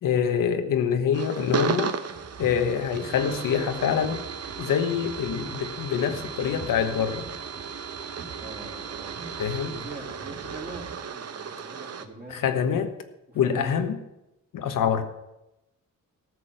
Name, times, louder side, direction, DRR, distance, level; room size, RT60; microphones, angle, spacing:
voice 1, 0.0-1.9 2.4-4.2 4.6-7.2 9.4-9.7 12.3-12.9 13.3-14.0 14.5-15.0, left 7 dB, 75° left, 7 dB, 1.2 m, -25 dB
sound 1, 1.1-12.1, right 7 dB, 50° right, 1.0 m, -35 dB
sound 2, 2.1-11.0, right 4 dB, 70° right, 2.2 m, -44 dB
voice 2, 8.4-9.2 9.6-12.9 13.3-13.9 14.8-15.0, right 2 dB, 30° right, -1 dB, 3.4 m, -43 dB
14.0 x 6.3 x 7.7 m, 0.92 s
cardioid pair, 115°, 33 cm